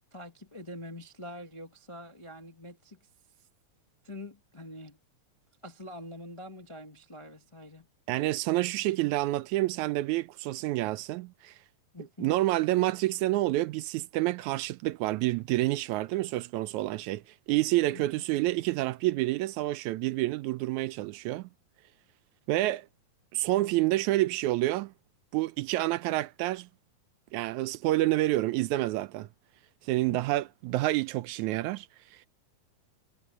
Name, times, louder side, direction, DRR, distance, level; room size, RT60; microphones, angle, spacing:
voice 1, 0.0-3.0 4.0-5.0 5.6-7.9 11.9-12.3 17.9-18.0 30.1-30.2, left 1 dB, 30° left, 0.5 m, -45 dB
voice 2, 8.1-11.6 12.2-21.5 22.5-22.9 23.3-24.9 25.3-26.7 27.3-29.3 29.8-32.3, right 17 dB, 80° right, 1.9 m, -28 dB
omnidirectional pair, 3.5 m